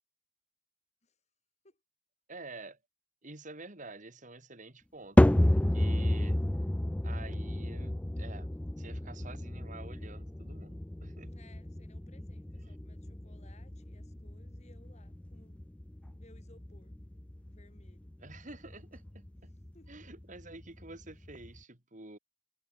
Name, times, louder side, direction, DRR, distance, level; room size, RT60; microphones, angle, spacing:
voice 1, 2.3-2.8 3.2-6.4 7.0-11.3 12.6-12.8 18.2-19.5 19.9-22.2, right 2 dB, 40° right, 3.3 m, -49 dB
sound 1, 5.2-21.6, left 1 dB, 5° left, 0.3 m, -32 dB
voice 2, 11.2-15.7 16.1-16.9 17.5-18.1 19.7-19.9, left 2 dB, 35° left, 3.3 m, -62 dB
head